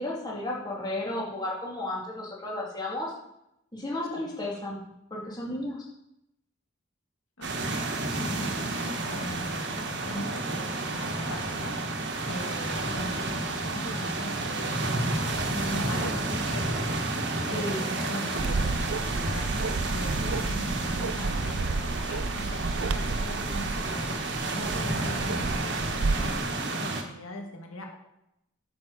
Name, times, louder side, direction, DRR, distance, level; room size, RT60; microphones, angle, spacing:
voice 1, 0.0-3.1 3.7-4.8 5.1-5.8 17.5-17.9, left 1 dB, 20° left, -4 dB, 2.6 m, -33 dB
voice 2, 7.4-7.8 8.1-11.8 12.2-16.7 17.5-18.7 19.2-24.1 24.5-25.6 25.9-28.0, left 1 dB, 85° left, 1 dB, 1.7 m, -40 dB
sound 1, 7.4-27.0, right 2 dB, 55° right, 1.3 m, -31 dB
Bark, 18.4-26.4, right 3 dB, 80° right, 0.5 m, -32 dB
9.1 x 5.8 x 6.4 m, 0.83 s
head